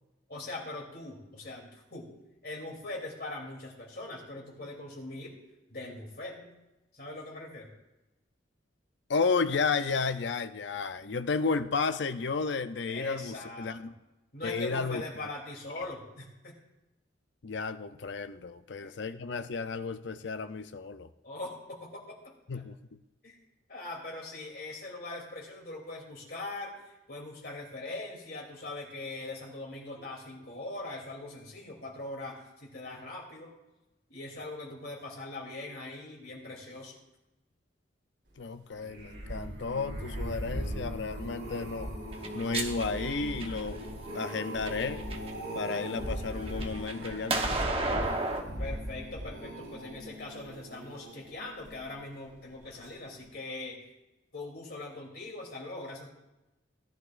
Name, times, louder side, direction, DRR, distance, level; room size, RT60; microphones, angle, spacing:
voice 1, 0.3-2.1 2.4-5.3 5.7-6.5 6.9-7.7 12.9-13.9 14.3-16.5 18.8-18.9 21.2-22.6 23.2-23.4 23.7-33.5 34.1-37.0 48.6-53.9 54.3-56.1, left 2 dB, 55° left, -1 dB, 3.0 m, -41 dB
voice 2, 9.1-13.9 14.4-15.0 17.4-21.1 22.5-23.0 38.4-41.9 42.3-43.8 44.1-45.0 45.5-48.2, left 4 dB, 70° left, 10 dB, 0.6 m, -33 dB
sound 1, 38.8-52.1 52.6-53.0 53.2-53.3, equal, 70° right, 4.2 m, -39 dB
sound 2, 42.1-43.9 44.5-45.3 45.7-48.4, right 2 dB, 30° right, 1.0 m, -33 dB
18.0 x 11.0 x 2.5 m, 1.0 s
head